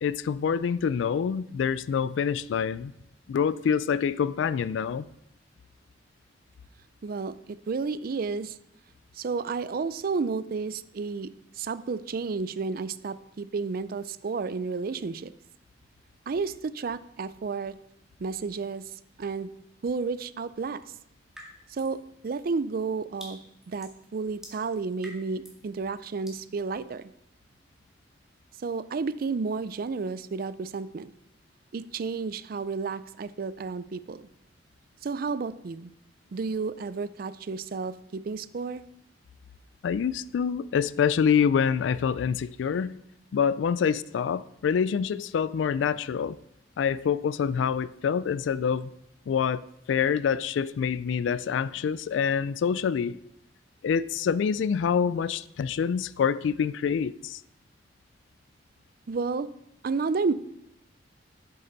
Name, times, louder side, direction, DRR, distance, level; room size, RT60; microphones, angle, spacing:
voice 1, 0.0-2.9 3.3-5.1 39.8-43.0 43.3-46.4 46.8-48.9 49.3-53.2 53.8-57.4, left 7 dB, 90° left, 0.3 m, -26 dB
voice 2, 7.0-8.6 9.2-11.3 11.6-15.3 16.3-17.8 18.2-18.8 19.2-19.5 19.8-20.8 21.7-23.4 23.7-27.1 28.6-31.1 31.7-34.3 35.0-35.9 36.3-38.8 59.1-59.5 59.8-60.3, right 4 dB, 55° right, 0.4 m, -31 dB
sound 1, 21.3-22.0 22.4-25.7 26.2-26.5, equal, 5° right, 2.0 m, -48 dB
9.2 x 7.7 x 4.0 m
head